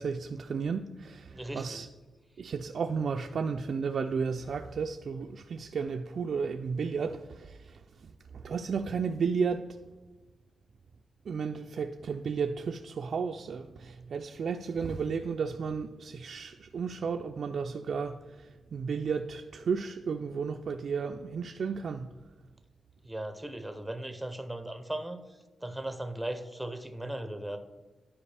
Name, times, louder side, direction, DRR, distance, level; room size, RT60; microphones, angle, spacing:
voice 1, 0.0-1.9 2.4-9.7 11.3-22.1, right 5 dB, 60° right, 0.3 m, -33 dB
voice 2, 1.3-1.9 23.0-25.2 25.6-27.6, right 1 dB, ahead, 0.6 m, -37 dB
11.0 x 4.9 x 3.3 m
wide cardioid pair, 145°, 0 cm